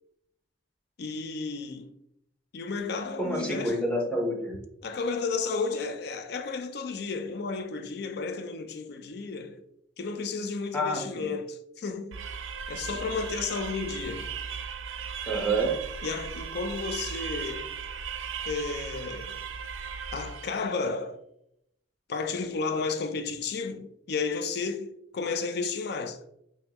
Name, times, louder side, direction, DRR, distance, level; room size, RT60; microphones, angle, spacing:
voice 1, 1.0-1.9 2.5-3.8 4.8-9.6 10.0-12.3 12.7-14.3 16.0-17.7 18.5-19.4 20.1-21.2 22.1-26.2, left 4 dB, 60° left, 0.4 m, -32 dB
voice 2, 3.2-4.6 10.7-11.3 15.3-15.8, right 1 dB, 5° left, 0.8 m, -28 dB
sound 1, 12.1-20.7, right 6 dB, 85° right, 0.4 m, -37 dB
5.3 x 2.3 x 2.9 m
head